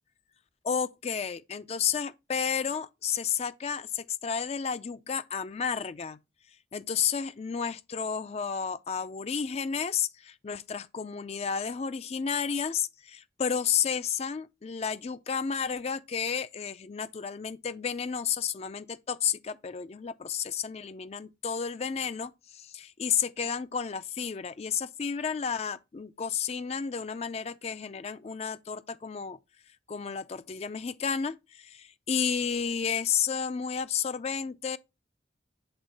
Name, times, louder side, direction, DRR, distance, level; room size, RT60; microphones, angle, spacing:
voice 1, 0.6-6.2 6.7-29.4 29.9-34.8, left 7 dB, 35° left, 0.4 m, -32 dB
7.9 x 3.7 x 3.9 m
head